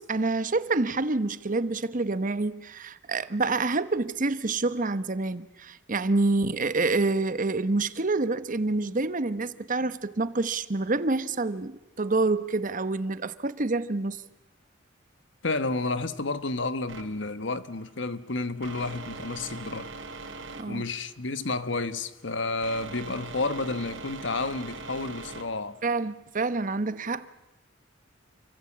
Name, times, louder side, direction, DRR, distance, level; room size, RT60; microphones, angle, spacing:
voice 1, 0.0-14.2 20.6-20.8 25.8-27.3, right 3 dB, 45° right, 1.1 m, -27 dB
voice 2, 15.4-19.9 20.7-25.8, left 3 dB, 65° left, 1.4 m, -31 dB
sound 1, 16.9-26.1, right 3 dB, 70° right, 3.4 m, -42 dB
29.0 x 23.5 x 8.6 m
head